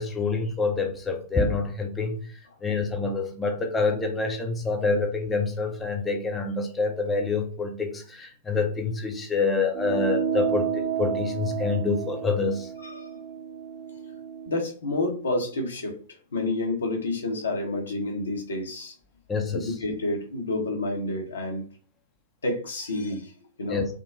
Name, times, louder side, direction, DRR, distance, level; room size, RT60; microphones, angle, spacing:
voice 1, 0.0-12.7 19.3-19.7 23.7-23.9, left 4 dB, 15° left, 3 dB, 0.5 m, -27 dB
sound 1, 9.7-14.6, right 8 dB, 30° right, 0.7 m, -31 dB
voice 2, 12.8-13.1 14.5-16.0 16.3-18.9 19.5-21.6 22.4-23.3 23.6-23.8, left 2 dB, 75° left, 1 dB, 0.9 m, -29 dB
3.5 x 2.0 x 2.6 m, 0.40 s
figure-of-eight pair, 105°, 0 cm